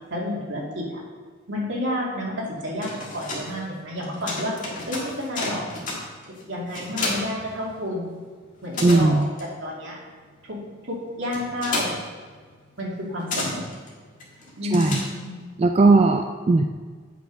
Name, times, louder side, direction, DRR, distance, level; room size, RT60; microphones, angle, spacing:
voice 1, 0.1-1.0 1.5-5.7 6.5-8.2 8.6-9.3 9.6-10.0 10.4-10.6 10.8-11.9 12.8-13.6 14.6-15.4, left 1 dB, 75° right, -4 dB, 2.5 m, -30 dB
sound 1, 2.6-8.2 8.4-15.5, left 2 dB, 40° left, 1.8 m, -33 dB
voice 2, 8.8-9.3 14.7-15.0 15.6-16.6, right 3 dB, 30° right, 5 dB, 0.3 m, -18 dB
8.2 x 6.0 x 5.1 m, 1.5 s
head